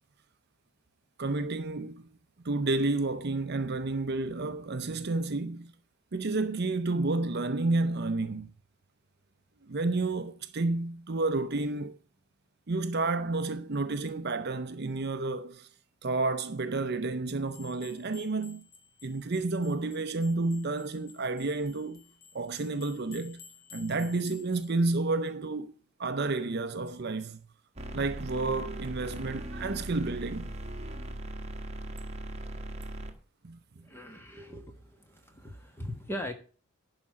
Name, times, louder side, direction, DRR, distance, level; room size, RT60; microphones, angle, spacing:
voice 1, 1.2-2.1 2.4-5.7 6.1-8.5 9.7-12.0 12.7-15.7 16.0-18.6 19.0-22.0 22.3-23.4 23.7-25.7 26.0-27.5 27.9-30.5 33.4-33.6, right 3 dB, 50° right, 0.7 m, -30 dB
sound 1, 17.5-24.7, left 6 dB, 45° left, 1.8 m, -54 dB
sound 2, 27.7-33.1, right 1 dB, 30° right, 1.2 m, -39 dB
voice 2, 33.8-36.3, left 1 dB, 10° left, 1.4 m, -40 dB
11.5 x 5.0 x 7.5 m
head